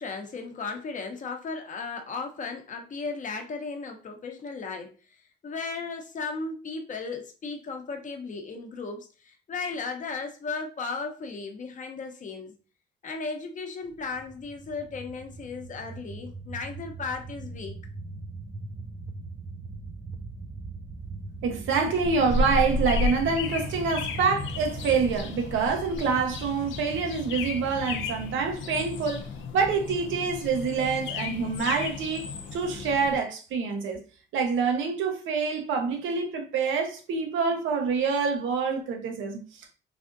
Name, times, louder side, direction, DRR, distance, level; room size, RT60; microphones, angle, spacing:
voice 1, 0.0-12.5 13.0-17.8, left 4 dB, 40° left, 0.7 m, -36 dB
sound 1, 13.9-28.4, right 3 dB, 20° right, 0.4 m, -40 dB
voice 2, 21.4-29.3 29.5-34.0 34.3-39.7, right 5 dB, 80° right, 0.8 m, -26 dB
sound 2, 22.0-33.2, left 3 dB, 75° left, 0.5 m, -33 dB
3.3 x 2.5 x 2.5 m
cardioid pair, 90°, 20 cm